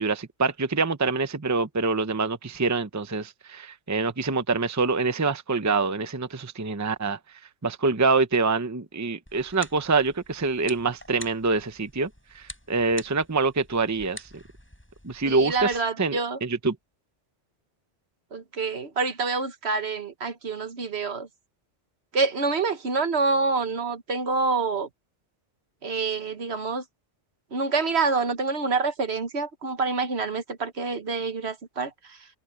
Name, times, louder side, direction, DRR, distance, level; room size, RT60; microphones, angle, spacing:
voice 1, 0.0-7.2 7.6-12.1 12.3-14.2 15.0-16.7, right 4 dB, 15° right, 0.8 m, -25 dB
sound 1, 9.3-15.8, left 1 dB, 10° left, 6.2 m, -46 dB
voice 2, 15.2-16.4 18.3-21.3 22.1-24.9 25.8-26.8 27.5-32.2, right 4 dB, 60° right, 1.6 m, -27 dB
omnidirectional pair, 1.2 m